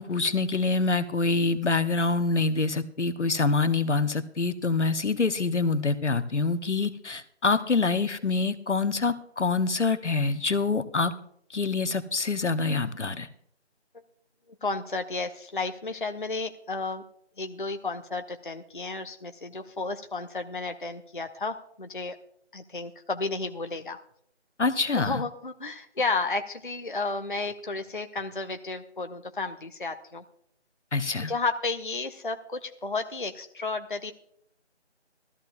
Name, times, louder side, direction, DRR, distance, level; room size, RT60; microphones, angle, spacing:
voice 1, 0.0-11.1 11.5-13.3 24.6-25.2 30.9-31.3, left 3 dB, 80° left, 12 dB, 1.0 m, -26 dB
voice 2, 14.6-17.0 17.4-22.2 22.5-24.0 25.0-30.2 31.3-34.1, left 3 dB, 45° left, 7 dB, 0.6 m, -32 dB
17.0 x 14.0 x 2.5 m, 0.68 s
figure-of-eight pair, 170°, 35 cm